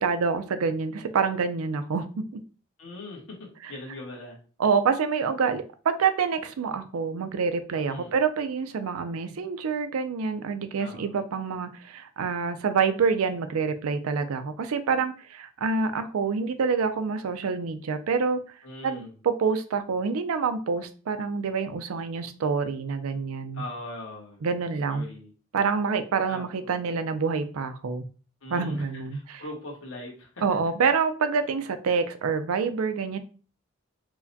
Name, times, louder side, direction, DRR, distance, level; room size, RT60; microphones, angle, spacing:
voice 1, 0.0-2.4 3.6-3.7 4.6-18.4 18.8-23.6 24.4-25.0 25.5-28.0 28.5-29.4 30.4-33.2, right 5 dB, 85° right, 10 dB, 0.4 m, -27 dB
voice 2, 2.8-4.4 7.9-8.1 10.8-11.2 18.6-19.1 23.5-24.4 24.9-25.3 26.3-26.4 28.4-30.4, left 2 dB, 65° left, -1 dB, 1.2 m, -40 dB
4.6 x 2.2 x 2.6 m, 0.38 s
head